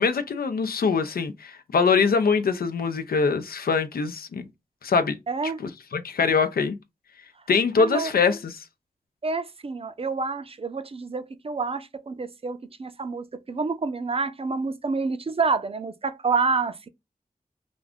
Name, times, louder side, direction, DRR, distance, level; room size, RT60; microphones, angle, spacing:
voice 1, 0.0-4.5 4.8-5.2 5.6-6.8 7.5-8.6, left 5 dB, 85° left, 0.5 m, -23 dB
voice 2, 5.3-5.6 7.8-8.1 9.2-16.8, right 4 dB, 40° right, 0.4 m, -28 dB
2.5 x 2.3 x 3.4 m
wide cardioid pair, 65°, 15 cm